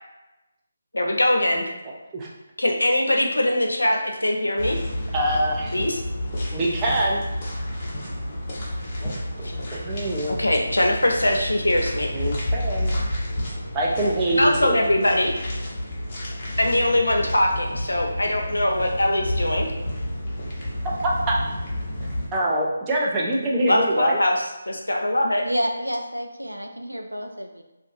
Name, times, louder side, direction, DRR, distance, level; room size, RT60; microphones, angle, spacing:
voice 1, 0.9-1.7 2.6-4.8 5.7-6.0 9.4-9.5 10.4-12.1 14.3-15.3 16.6-19.7 23.7-25.4, left 1 dB, 75° left, 1 dB, 0.5 m, -22 dB
sound 1, 4.6-22.3, left 1 dB, 30° left, 0.6 m, -30 dB
voice 2, 5.1-5.7 6.5-7.2 9.0-9.1 9.4-10.4 12.1-12.9 13.7-14.8 21.0-21.4 22.3-24.2, right 1 dB, 15° right, -4 dB, 0.5 m, -24 dB
voice 3, 25.4-27.6, equal, 90° right, 4 dB, 0.3 m, -29 dB
2.5 x 2.3 x 2.6 m, 1.0 s
figure-of-eight pair, 150°, 0 cm